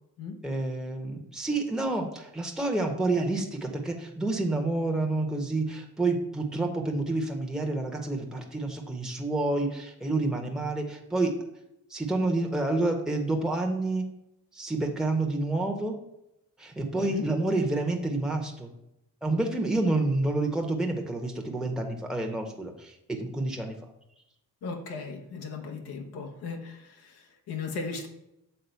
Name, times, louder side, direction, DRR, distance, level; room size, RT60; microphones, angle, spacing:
voice 1, 0.4-11.3 11.9-14.0 14.5-16.0 16.6-18.7 19.2-23.7, right 2 dB, ahead, 1 dB, 1.2 m, -29 dB
voice 2, 24.6-28.1, left 4 dB, 80° left, 1 dB, 1.1 m, -37 dB
6.8 x 3.7 x 5.7 m, 0.86 s
supercardioid pair, 50°, 39 cm